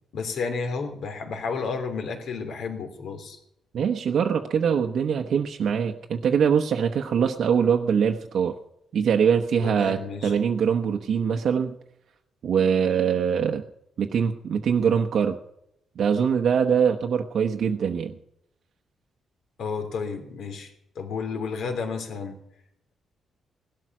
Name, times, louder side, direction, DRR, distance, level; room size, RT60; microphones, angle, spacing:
voice 1, 0.1-3.4 9.6-10.3 19.6-22.4, left 5 dB, 65° left, 6 dB, 3.1 m, -32 dB
voice 2, 3.7-8.5 8.9-11.8 12.4-13.6 14.0-15.4 16.0-18.1, right 7 dB, 55° right, 3 dB, 1.0 m, -23 dB
17.5 x 12.5 x 6.1 m, 0.79 s
cardioid pair, 165°, 0 cm